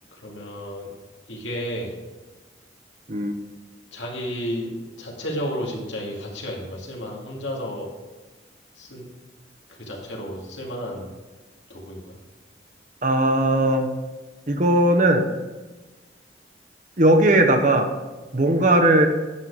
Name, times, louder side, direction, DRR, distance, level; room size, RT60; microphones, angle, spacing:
voice 1, 0.2-0.9 1.3-1.9 3.9-7.9 8.8-9.1 9.7-11.1 11.7-12.2, equal, 85° left, -1 dB, 2.2 m, -32 dB
voice 2, 13.0-13.9 14.5-15.3 17.0-17.9 18.3-19.1, right 1 dB, 40° right, 5 dB, 0.9 m, -18 dB
9.8 x 6.9 x 4.7 m, 1.2 s
head